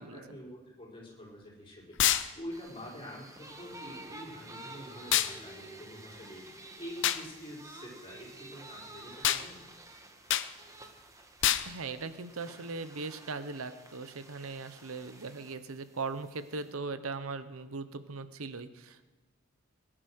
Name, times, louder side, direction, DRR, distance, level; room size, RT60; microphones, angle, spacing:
voice 1, 0.0-9.6, equal, 25° left, -4 dB, 4.8 m, -46 dB
sound 1, 2.0-2.3 5.1-5.3 7.0-7.2 9.2-9.4 10.3-10.5 11.4-11.7, left 11 dB, 60° left, 0.7 m, -26 dB
sound 2, 2.5-16.7, right 2 dB, 15° right, 1.3 m, -51 dB
voice 2, 11.6-19.1, right 4 dB, 80° right, 12 dB, 0.9 m, -39 dB
20.5 x 10.0 x 6.4 m, 1.2 s
head